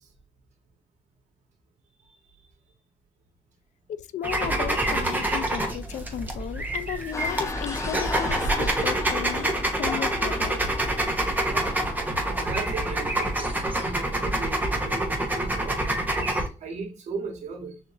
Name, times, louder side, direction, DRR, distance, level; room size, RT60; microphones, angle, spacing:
voice 1, 3.9-10.6, left 10 dB, 85° left, 0.4 m, -35 dB
sound 1, 4.2-16.5, right 1 dB, 15° right, 1.1 m, -27 dB
sound 2, 7.1-14.2, left 3 dB, 25° left, 0.8 m, -37 dB
voice 2, 12.2-15.8 16.6-17.8, right 4 dB, 75° right, 1.6 m, -37 dB
6.5 x 2.8 x 2.6 m
cardioid pair, 110°, 12 cm